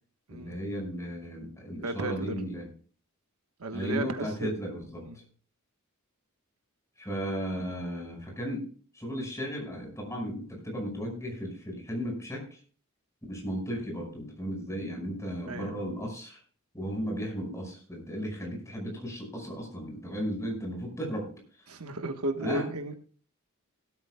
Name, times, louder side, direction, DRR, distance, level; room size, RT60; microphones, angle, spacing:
voice 1, 0.3-2.7 3.7-5.0 7.0-8.7 8.9-12.6 13.3-16.4 16.7-21.3 22.4-22.7, equal, 15° left, 1 dB, 5.4 m, -35 dB
voice 2, 1.8-2.3 3.6-4.6 5.0-5.2 15.5-15.7 21.7-22.9, right 2 dB, 85° right, 7 dB, 1.3 m, -34 dB
17.5 x 13.0 x 2.3 m, 0.42 s
head